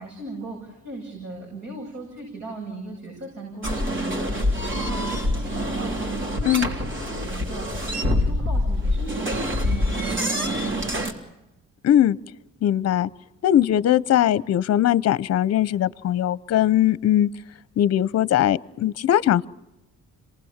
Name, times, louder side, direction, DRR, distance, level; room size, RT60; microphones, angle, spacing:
voice 1, 0.0-7.8 8.1-10.7, right 2 dB, 60° right, 0 dB, 7.8 m, -37 dB
sound 1, 3.6-11.1, left 1 dB, 40° right, 3.6 m, -25 dB
voice 2, 11.8-12.2 12.6-13.1 13.4-17.3 17.8-19.5, left 11 dB, 55° left, 18 dB, 0.7 m, -20 dB
27.0 x 19.5 x 7.3 m, 0.95 s
cardioid pair, 90°, 30 cm